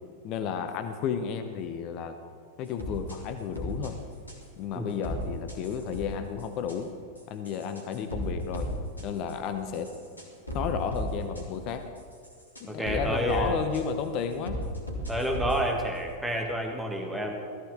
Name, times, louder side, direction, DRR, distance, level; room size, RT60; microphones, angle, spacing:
voice 1, 0.2-2.1 2.6-4.0 4.6-6.9 7.3-8.7 9.0-9.9 10.5-11.9 12.6-14.6, left 7 dB, 40° left, 8 dB, 0.9 m, -32 dB
sound 1, 2.8-3.2 3.5-3.9 4.3-4.4 5.0-5.2 5.5-6.1 6.4-6.8 7.2-8.3 8.5-8.7 9.0-9.3 9.7-11.1 11.3-11.4 12.0-13.0 13.3-13.5 13.7-13.8 14.5-15.6, equal, 80° left, 2.4 m, -35 dB
voice 2, 12.7-13.6 15.1-17.4, right 1 dB, 5° right, 2 dB, 1.7 m, -29 dB
17.0 x 14.5 x 3.7 m, 2.3 s
figure-of-eight pair, 90°, 0 cm